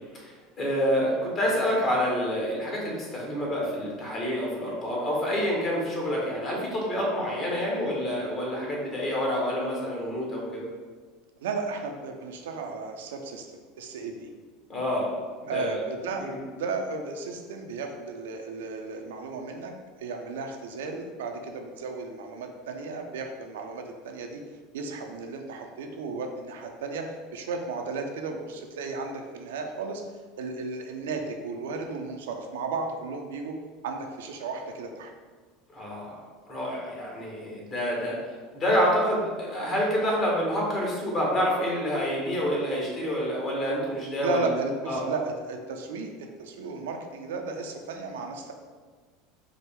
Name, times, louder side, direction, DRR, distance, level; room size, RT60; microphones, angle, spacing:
voice 1, 0.1-10.7 14.7-15.1 15.4-15.8 16.2-16.3 35.7-44.5 44.9-45.0, equal, 40° left, -3 dB, 1.4 m, -28 dB
voice 2, 11.4-14.3 15.5-16.3 16.6-19.7 20.0-24.4 24.7-30.1 30.4-33.6 33.8-35.1 44.2-46.1 46.4-48.5, right 4 dB, 80° right, 4 dB, 0.4 m, -34 dB
4.6 x 2.1 x 3.4 m, 1.5 s
hypercardioid pair, 85°, 0 cm